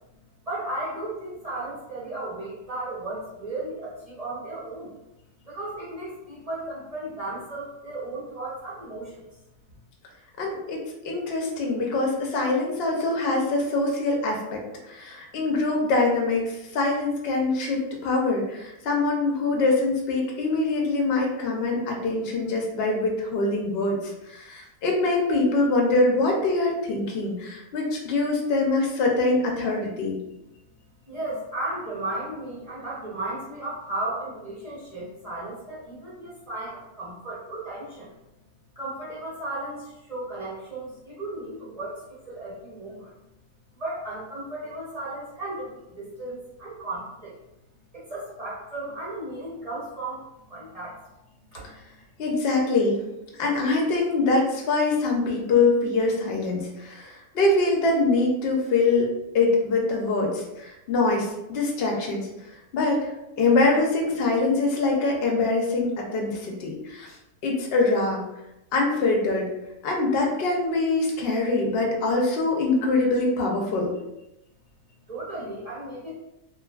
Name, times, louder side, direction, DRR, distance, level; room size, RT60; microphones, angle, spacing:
voice 1, 0.5-4.9 5.4-9.2 31.1-38.1 38.8-43.1 43.7-47.3 47.9-50.2 50.5-51.0 51.5-52.0 75.1-76.1, right 2 dB, 35° right, -8 dB, 0.6 m, -35 dB
voice 2, 10.4-10.8 11.0-14.6 14.9-30.2 52.2-53.1 53.4-59.1 59.3-62.3 62.7-67.1 67.4-68.2 68.7-69.4 69.8-73.9, left 3 dB, 60° left, -1 dB, 0.7 m, -24 dB
3.0 x 2.4 x 2.3 m, 0.91 s
omnidirectional pair, 1.6 m